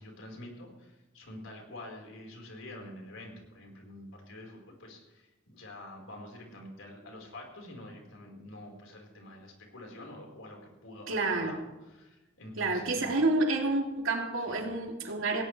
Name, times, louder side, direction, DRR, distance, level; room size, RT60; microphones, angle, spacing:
voice 1, 0.0-13.4 14.4-14.6, left 1 dB, 80° left, 1 dB, 4.7 m, -47 dB
voice 2, 11.1-11.6 12.6-15.4, right 2 dB, 85° right, 1 dB, 2.9 m, -29 dB
18.5 x 18.0 x 3.4 m, 1.1 s
head